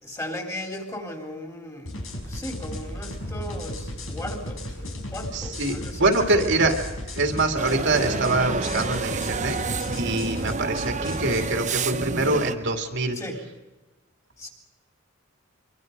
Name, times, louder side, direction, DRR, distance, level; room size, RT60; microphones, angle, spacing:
voice 1, 0.0-6.7 13.1-13.4 14.4-14.5, left 1 dB, 15° left, 3 dB, 3.7 m, -36 dB
sound 1, 1.8-11.4, left 1 dB, 75° left, 4.9 m, -35 dB
voice 2, 5.3-6.7 7.1-9.6 9.9-13.2, right 2 dB, 60° right, 4 dB, 2.5 m, -24 dB
sound 2, 7.6-12.5, right 4 dB, 35° right, 0.9 m, -29 dB
24.5 x 24.5 x 5.4 m, 1.1 s
head